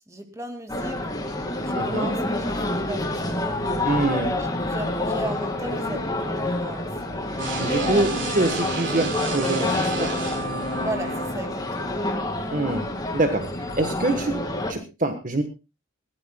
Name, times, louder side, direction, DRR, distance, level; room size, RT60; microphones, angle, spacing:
voice 1, 0.1-3.8 4.4-8.0 10.8-12.1, right 1 dB, 15° right, 6 dB, 2.2 m, -36 dB
sound 1, 0.7-14.7, left 1 dB, 20° left, 2.2 m, -28 dB
voice 2, 1.7-2.2 3.8-4.4 7.6-10.1 12.5-15.4, right 2 dB, 40° right, 8 dB, 1.4 m, -25 dB
sound 2, 7.4-11.3, right 2 dB, 65° right, 3.2 m, -30 dB
21.5 x 16.5 x 2.3 m, 0.28 s
head